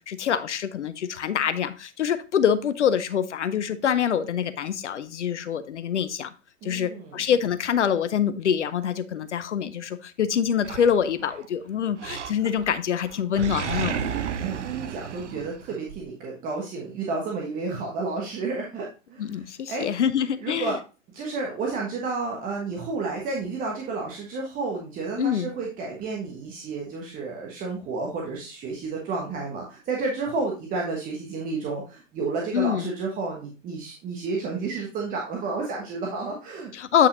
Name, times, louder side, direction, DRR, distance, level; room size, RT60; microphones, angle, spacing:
voice 1, 0.1-6.3 6.6-14.0 19.2-20.8 25.2-25.5 32.5-32.9 36.7-37.1, left 8 dB, 65° left, 13 dB, 0.7 m, -25 dB
voice 2, 6.6-7.2 14.4-19.4 19.7-19.8 20.4-20.8 21.1-36.7, right 4 dB, 20° right, -1 dB, 1.2 m, -31 dB
Animal, 10.6-11.5 12.0-12.8 13.0-16.0, right 8 dB, 65° right, 0.8 m, -32 dB
8.4 x 5.6 x 2.6 m, 0.32 s
figure-of-eight pair, 105°, 39 cm